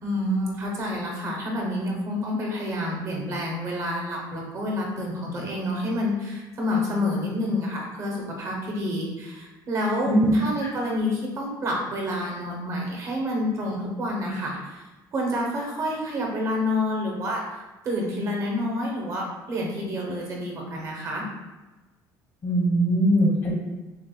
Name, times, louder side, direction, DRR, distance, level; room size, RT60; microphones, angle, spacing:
voice 1, 0.0-14.8 15.1-21.3, left 1 dB, 40° right, -1 dB, 0.9 m, -28 dB
voice 2, 22.4-23.5, right 1 dB, 40° left, -3 dB, 1.2 m, -21 dB
6.8 x 2.4 x 2.3 m, 1.1 s
cardioid pair, 155°, 8 cm